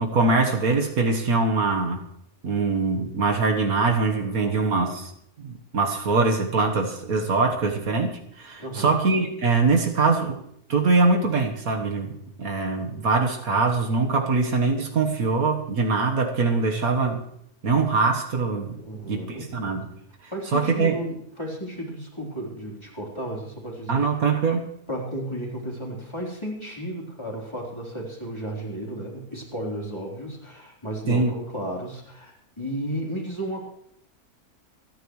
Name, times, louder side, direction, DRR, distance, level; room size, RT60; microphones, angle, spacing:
voice 1, 0.0-2.0 2.4-5.1 5.4-10.4 10.7-17.2 17.6-18.8 19.1-19.9 20.5-21.0 23.9-24.7 31.1-31.3, right 4 dB, 70° right, 3 dB, 1.8 m, -23 dB
voice 2, 4.4-4.9 8.6-9.0 18.8-19.5 20.3-24.1 24.9-33.7, right 1 dB, 20° left, -3 dB, 3.7 m, -34 dB
27.0 x 10.5 x 3.2 m, 0.72 s
omnidirectional pair, 1.6 m